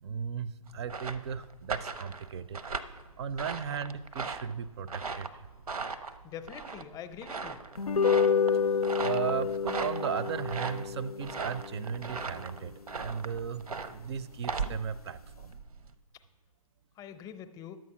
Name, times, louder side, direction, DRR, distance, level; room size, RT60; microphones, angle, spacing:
voice 1, 0.0-2.6 3.2-5.3 9.0-15.5, right 7 dB, 45° right, 17 dB, 0.4 m, -36 dB
sound 1, 0.7-15.9, right 4 dB, 85° right, 0.7 m, -39 dB
voice 2, 6.2-7.6 17.0-17.8, left 8 dB, 20° left, 11 dB, 0.6 m, -44 dB
sound 2, 7.8-14.3, left 6 dB, 90° left, 0.5 m, -30 dB
10.5 x 7.5 x 5.8 m, 1.3 s
figure-of-eight pair, 125°, 19 cm